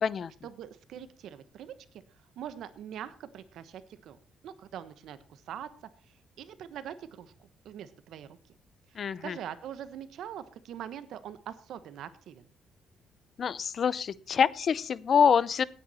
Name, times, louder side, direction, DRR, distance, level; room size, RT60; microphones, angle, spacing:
voice 1, 0.4-2.0 2.4-4.2 4.4-8.4 8.9-12.5, right 10 dB, 80° right, 14 dB, 1.2 m, -43 dB
voice 2, 9.0-9.4 13.4-15.6, left 7 dB, 50° left, 21 dB, 0.6 m, -26 dB
17.5 x 9.5 x 4.3 m, 0.40 s
cardioid pair, 115°, 0 cm